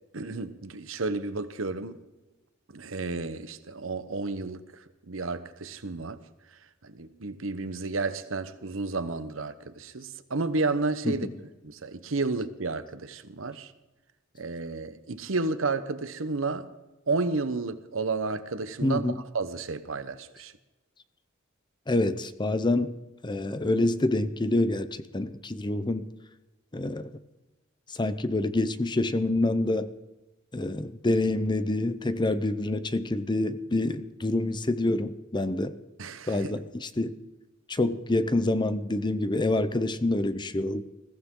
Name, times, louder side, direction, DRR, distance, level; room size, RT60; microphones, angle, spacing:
voice 1, 0.1-2.0 2.7-6.2 6.8-11.3 11.6-13.7 14.4-16.7 17.1-20.5 36.0-36.6, right 3 dB, 85° right, 1.0 m, -32 dB
voice 2, 18.8-19.2 21.9-22.9 23.2-24.9 25.1-26.0 26.7-27.1 27.9-29.9 30.5-35.7 36.3-37.1 37.7-40.8, left 2 dB, 25° left, 0.7 m, -27 dB
21.0 x 15.0 x 3.8 m
head